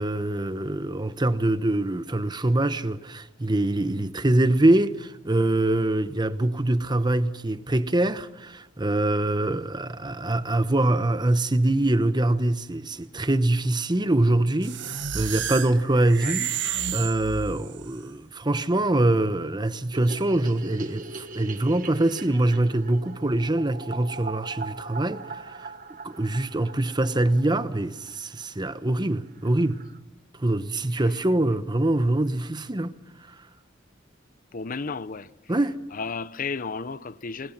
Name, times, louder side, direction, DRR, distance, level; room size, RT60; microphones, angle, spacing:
voice 1, 0.0-16.5 16.9-25.7 26.0-29.8 30.3-32.9 35.5-35.8, right 1 dB, 20° right, 0.9 m, -24 dB
sound 1, 14.6-17.9, right 8 dB, 65° right, 1.4 m, -31 dB
sound 2, 19.9-28.2 28.4-28.5 28.8-28.9 29.1-29.2 29.4-30.0, right 3 dB, 45° right, 1.2 m, -40 dB
voice 2, 34.5-35.3 35.9-37.5, left 4 dB, 45° left, 0.7 m, -33 dB
27.0 x 20.5 x 6.0 m
head